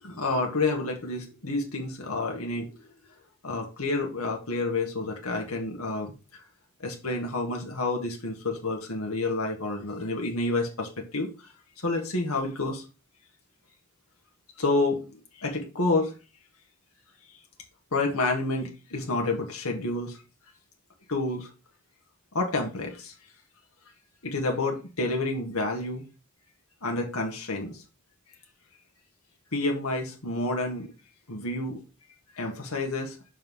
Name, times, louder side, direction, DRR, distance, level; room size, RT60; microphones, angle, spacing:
voice 1, 0.0-2.7 3.4-6.4 6.8-11.5 11.8-12.8 14.6-16.1 17.9-20.2 21.1-21.5 22.3-23.1 24.2-26.0 26.8-27.8 29.5-30.9 31.3-31.8 32.4-33.2, left 2 dB, 75° left, 1 dB, 1.8 m, -29 dB
5.5 x 4.6 x 6.3 m, 0.31 s
head